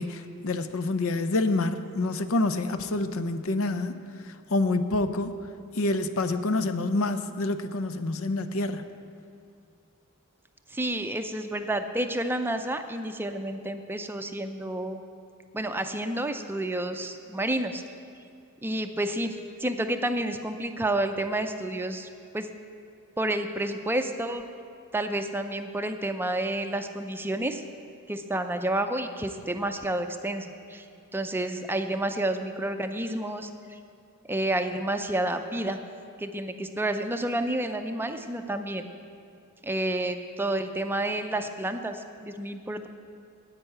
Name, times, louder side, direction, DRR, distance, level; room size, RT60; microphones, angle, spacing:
voice 1, 0.0-4.0 4.2-5.3 5.7-8.8, left 2 dB, 70° left, 10 dB, 0.6 m, -27 dB
voice 2, 10.7-15.0 15.5-17.8 18.6-22.1 22.3-22.5 23.2-24.4 24.9-27.6 28.1-30.9 31.1-33.8 34.3-35.8 36.2-38.9 39.6-42.9, right 1 dB, 10° right, 7 dB, 0.5 m, -30 dB
10.0 x 8.9 x 7.8 m, 2.4 s
head